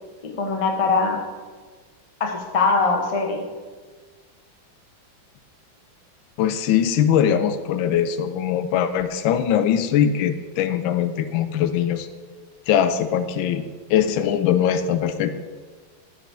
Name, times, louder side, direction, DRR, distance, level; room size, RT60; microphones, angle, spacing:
voice 1, 0.4-1.2 2.2-3.4, left 4 dB, 35° left, 3 dB, 0.5 m, -21 dB
voice 2, 6.4-12.1 12.7-13.6 13.9-15.3, left 9 dB, 85° left, 11 dB, 1.3 m, -21 dB
7.2 x 5.3 x 6.7 m, 1.5 s
omnidirectional pair, 2.1 m